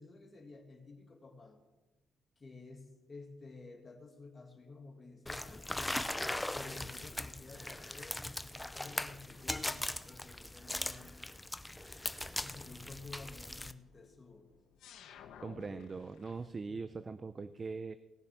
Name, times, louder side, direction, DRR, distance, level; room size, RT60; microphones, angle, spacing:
voice 1, 0.0-1.6 2.4-5.7 6.5-11.4 12.4-14.5 15.6-15.9, left 3 dB, 35° left, 4 dB, 2.1 m, -52 dB
sound 1, 5.3-13.7, left 1 dB, 10° left, 0.6 m, -40 dB
sound 2, 11.7-16.5, left 8 dB, 85° left, 1.1 m, -59 dB
voice 2, 15.4-18.0, right 4 dB, 30° right, 12 dB, 0.5 m, -41 dB
19.0 x 6.7 x 6.0 m, 1.1 s
cardioid pair, 90°, 0 cm